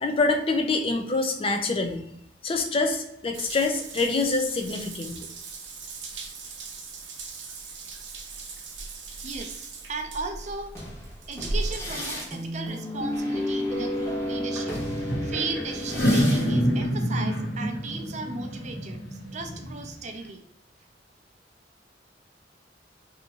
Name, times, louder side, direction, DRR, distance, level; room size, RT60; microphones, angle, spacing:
voice 1, 0.0-2.1 2.4-5.3, left 3 dB, 30° left, 4 dB, 0.5 m, -26 dB
Water tap faucet / Bathtub (filling or washing) / Drip, 3.3-13.2, right 2 dB, 80° right, 0.7 m, -38 dB
voice 2, 9.2-10.9 11.3-20.4, right 3 dB, 40° right, 5 dB, 0.5 m, -36 dB
sound 1, 10.4-16.9, left 1 dB, 15° left, 1.0 m, -32 dB
sound 2, 14.6-14.7 15.0-19.9, equal, 70° left, 1.5 m, -27 dB
2.9 x 2.6 x 3.7 m, 0.77 s
head